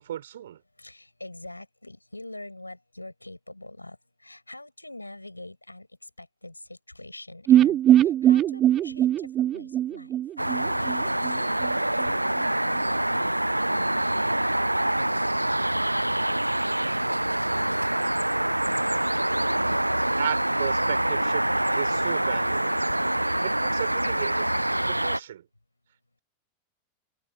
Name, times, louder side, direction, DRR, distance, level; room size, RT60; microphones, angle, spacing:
voice 1, 0.0-0.6 20.2-21.5 21.7-22.8 23.4-24.5 24.9-25.5, right 11 dB, 60° right, 6.1 m, -34 dB
voice 2, 0.8-10.2 10.5-13.4 23.0-23.1, left 2 dB, 85° left, 7.1 m, -45 dB
sound 1, 7.5-11.3 11.6-11.7 12.0-12.1, right 11 dB, 30° right, 0.5 m, -21 dB
sound 2, 10.4-25.2, right 1 dB, 85° right, 0.5 m, -25 dB
figure-of-eight pair, 90°, 0 cm